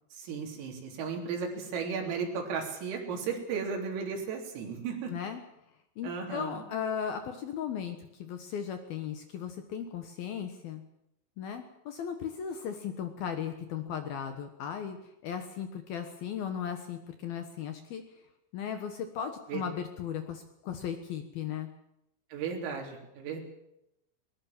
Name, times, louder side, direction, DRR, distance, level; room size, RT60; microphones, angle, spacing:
voice 1, 0.1-5.1 6.0-6.6 19.5-19.6 22.3-23.4, right 6 dB, 90° right, 1 dB, 6.1 m, -35 dB
voice 2, 5.1-5.4 6.0-10.8 11.4-15.0 15.2-18.0 18.5-21.7, left 8 dB, 65° left, 7 dB, 2.6 m, -36 dB
21.0 x 20.0 x 7.4 m, 0.82 s
omnidirectional pair, 5.8 m